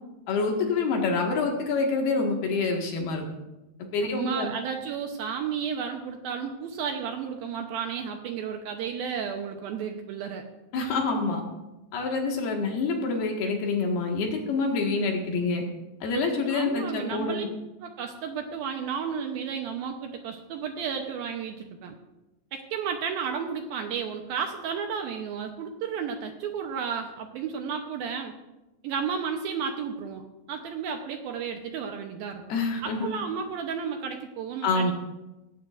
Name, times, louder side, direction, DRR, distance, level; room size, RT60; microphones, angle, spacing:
voice 1, 0.3-3.2 3.9-4.5 10.7-11.4 11.9-15.6 16.0-17.5 32.5-33.1 34.6-34.9, left 3 dB, 65° left, 1 dB, 3.6 m, -26 dB
voice 2, 4.0-10.4 16.5-17.4 17.8-21.9 22.5-28.3 28.8-32.4 32.8-34.9, right 7 dB, 75° right, 4 dB, 2.4 m, -33 dB
18.5 x 16.5 x 2.6 m, 1.0 s
omnidirectional pair, 5.0 m